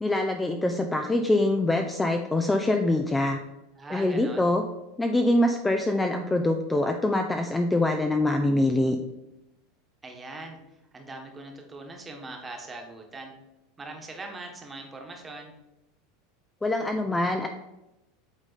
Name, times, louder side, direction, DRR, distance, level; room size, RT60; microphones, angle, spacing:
voice 1, 0.0-3.4 3.9-4.6 5.0-9.0 16.6-17.5, left 1 dB, 10° left, 4 dB, 0.5 m, -24 dB
voice 2, 3.8-4.5 10.0-10.6 10.9-13.3 13.8-15.5, right 2 dB, 15° right, 2 dB, 1.3 m, -41 dB
8.0 x 3.7 x 4.1 m, 0.94 s
supercardioid pair, 130°, 0 cm